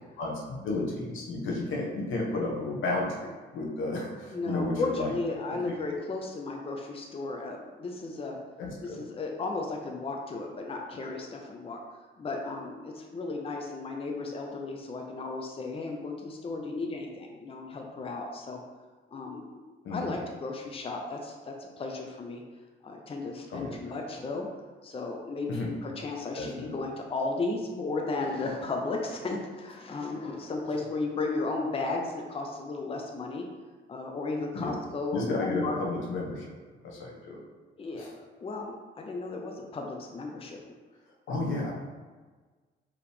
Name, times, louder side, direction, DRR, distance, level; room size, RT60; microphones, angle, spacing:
voice 1, 0.2-5.1 8.6-9.0 19.8-20.0 23.5-23.9 25.5-25.7 26.3-26.7 34.5-34.7 35.1-36.6 36.8-37.4 37.9-38.1 41.3-41.7, left 2 dB, 80° left, -1 dB, 1.1 m, -32 dB
voice 2, 4.3-8.4 8.8-11.8 12.2-18.6 19.1-19.6 19.9-22.4 22.8-24.5 24.8-33.5 33.9-35.8 37.8-38.0 38.4-40.6, left 3 dB, 30° left, 1 dB, 0.6 m, -34 dB
4.8 x 3.0 x 3.5 m, 1.4 s
cardioid pair, 90°, 20 cm